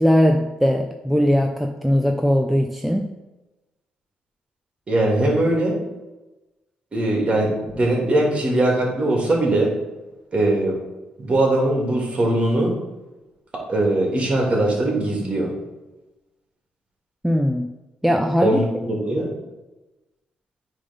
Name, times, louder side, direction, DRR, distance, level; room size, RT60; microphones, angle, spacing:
voice 1, 0.0-3.1 17.2-17.7 18.0-18.6, equal, ahead, 3 dB, 0.6 m, -19 dB
voice 2, 4.9-5.7 6.9-9.7 10.3-10.8 11.2-12.7 13.7-15.5 18.4-19.3, right 1 dB, 35° right, -2 dB, 2.8 m, -20 dB
8.9 x 3.8 x 5.4 m, 1.1 s
cardioid pair, 90°, 3 cm